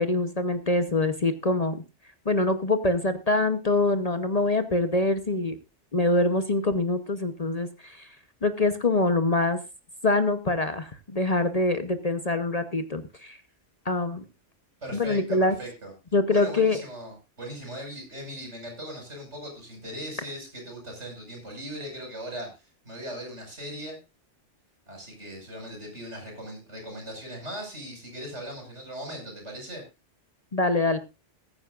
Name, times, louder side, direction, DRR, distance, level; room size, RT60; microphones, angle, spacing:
voice 1, 0.0-1.8 2.3-5.6 5.9-8.1 8.4-9.6 10.0-13.4 13.9-14.2 14.9-15.5 16.1-16.8 30.5-31.0, left 2 dB, 35° left, 10 dB, 0.9 m, -24 dB
voice 2, 14.8-15.9 16.3-24.0 24.9-29.8, equal, 70° right, 2 dB, 6.1 m, -39 dB
20.5 x 9.5 x 2.5 m, 0.27 s
omnidirectional pair, 1.2 m